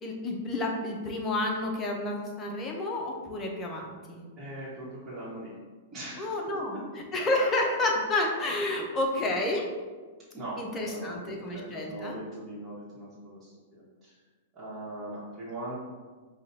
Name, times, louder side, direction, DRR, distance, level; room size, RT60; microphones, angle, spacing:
voice 1, 0.0-4.2 6.2-6.8 7.1-9.6 10.6-12.2, left 2 dB, 20° left, 0 dB, 0.8 m, -30 dB
voice 2, 4.4-5.6 5.9-6.4 6.7-6.8 10.3-14.2 14.5-15.8, right 1 dB, 20° right, -10 dB, 1.4 m, -40 dB
5.2 x 2.4 x 2.8 m, 1.4 s
hypercardioid pair, 105°, 0 cm